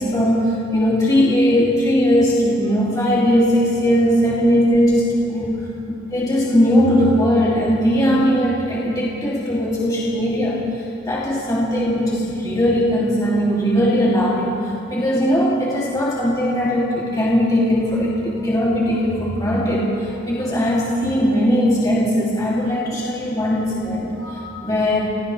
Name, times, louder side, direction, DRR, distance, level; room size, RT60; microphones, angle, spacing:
voice 1, 0.0-5.5 6.1-10.6 11.1-14.6 14.9-25.1, equal, 20° left, -7 dB, 2.8 m, -19 dB
30.0 x 28.5 x 3.4 m, 2.8 s
head